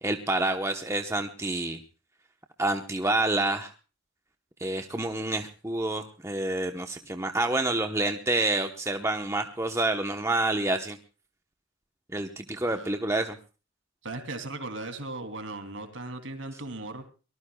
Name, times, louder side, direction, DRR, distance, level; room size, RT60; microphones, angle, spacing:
voice 1, 0.0-1.8 2.6-3.7 4.6-11.0 12.1-13.4, right 2 dB, 15° right, 5 dB, 1.0 m, -28 dB
voice 2, 12.7-13.0 14.0-17.1, right 2 dB, 65° right, 7 dB, 3.0 m, -37 dB
24.0 x 19.0 x 2.3 m, 0.34 s
head